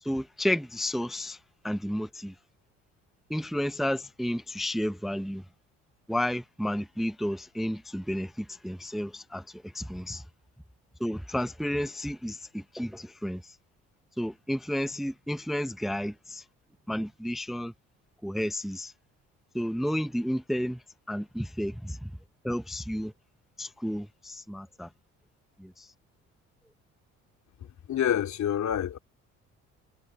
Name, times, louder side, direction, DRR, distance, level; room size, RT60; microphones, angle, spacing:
voice 1, 0.0-1.4 1.6-2.3 3.3-5.4 6.1-10.2 11.0-13.6 14.2-16.4 16.9-17.7 18.2-18.9 19.5-22.1 22.4-23.1 23.6-24.9 25.6-25.9, equal, ahead, 0.8 m, -32 dB
voice 2, 27.9-29.0, left 10 dB, 60° left, 2.6 m, -27 dB
supercardioid pair, 65°, 32 cm